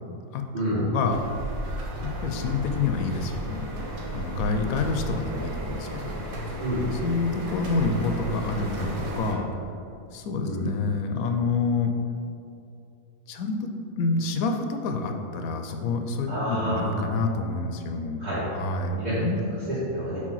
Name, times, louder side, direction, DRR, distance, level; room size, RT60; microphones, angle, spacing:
voice 1, 0.7-1.2 2.0-3.7 4.1-6.2 7.0-9.5 10.1-11.9 13.3-13.7 14.0-18.2 18.5-19.4, left 4 dB, 85° left, 5 dB, 1.0 m, -28 dB
sound 1, 1.1-9.3, right 1 dB, 90° right, 1.4 m, -34 dB
voice 2, 16.3-16.9 18.2-18.4 18.9-19.1 19.5-20.2, equal, 30° right, -13 dB, 1.6 m, -29 dB
4.9 x 4.3 x 5.6 m, 2.7 s
omnidirectional pair, 1.5 m